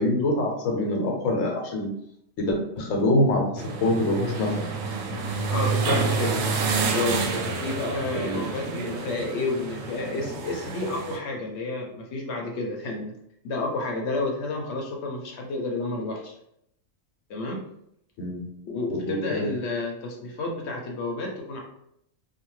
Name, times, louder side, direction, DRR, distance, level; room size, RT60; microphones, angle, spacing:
voice 1, 0.0-1.9 2.4-4.7 8.1-8.4 18.2-18.5 18.9-19.5, left 1 dB, 90° left, 1 dB, 1.0 m, -25 dB
sound 1, 3.6-11.2, right 4 dB, 85° right, 1.0 m, -28 dB
voice 2, 5.5-6.4 6.9-13.1 13.4-16.3 17.3-17.6 18.7-21.6, left 2 dB, 65° left, 0 dB, 0.8 m, -30 dB
2.8 x 2.2 x 3.0 m, 0.74 s
omnidirectional pair, 1.3 m